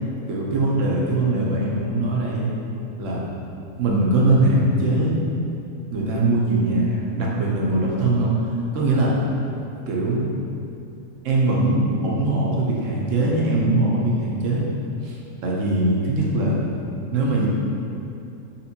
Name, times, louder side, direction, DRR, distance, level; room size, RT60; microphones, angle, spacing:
voice 1, 0.3-2.5 3.0-3.2 3.8-5.2 5.9-8.4 8.7-9.2 9.9-10.2 11.2-14.6 15.0-15.2 15.4-16.6 17.1-17.5, right 2 dB, 65° right, -3 dB, 1.0 m, -21 dB
4.2 x 3.5 x 2.8 m, 2.7 s
omnidirectional pair, 1.5 m